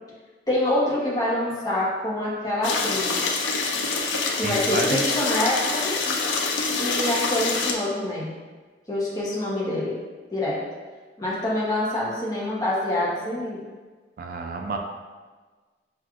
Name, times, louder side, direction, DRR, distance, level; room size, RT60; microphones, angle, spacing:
voice 1, 0.5-3.3 4.4-5.9 6.8-8.3 8.9-10.0 10.3-10.6 11.2-13.6, left 1 dB, 20° left, -7 dB, 0.9 m, -26 dB
sound 1, 2.6-7.7, left 4 dB, 85° left, 0.5 m, -25 dB
voice 2, 4.4-5.1 14.2-14.8, right 3 dB, 50° right, 2 dB, 0.3 m, -29 dB
5.9 x 2.5 x 2.4 m, 1.4 s
head